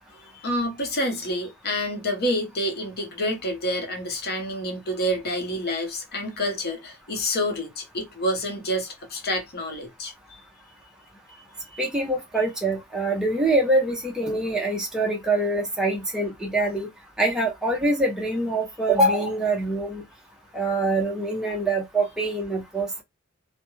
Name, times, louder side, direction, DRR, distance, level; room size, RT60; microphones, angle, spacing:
voice 1, 0.1-10.4 11.7-11.8, equal, 50° left, 0.8 m, -28 dB
voice 2, 11.8-16.9 17.2-20.0 20.5-23.0, right 2 dB, 5° right, 0.6 m, -24 dB
2.3 x 2.1 x 3.0 m
head